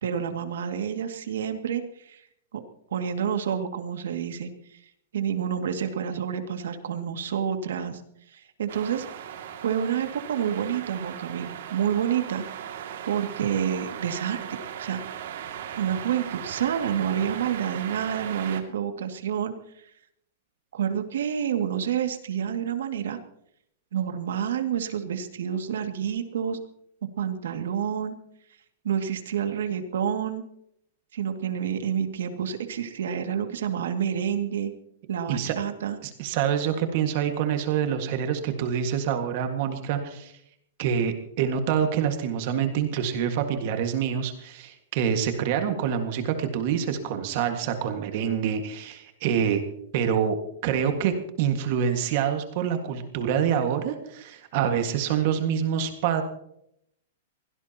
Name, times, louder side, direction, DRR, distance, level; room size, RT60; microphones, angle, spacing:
voice 1, 0.0-2.2 2.5-2.6 2.9-4.8 5.1-8.0 8.3-9.1 9.6-12.4 13.1-14.5 14.8-15.0 15.7-19.5 20.7-23.2 23.9-26.6 27.2-28.2 28.8-30.4 31.1-34.7 35.1-36.0, right 8 dB, 85° right, 6 dB, 2.3 m, -28 dB
sound 1, 8.7-18.6, right 9 dB, 60° right, 2.4 m, -38 dB
voice 2, 36.0-40.3 40.8-49.6 49.9-50.4 50.6-51.1 51.4-56.2, right 8 dB, 40° right, 6 dB, 1.8 m, -26 dB
23.0 x 17.5 x 3.0 m, 0.73 s
supercardioid pair, 170°, 0 cm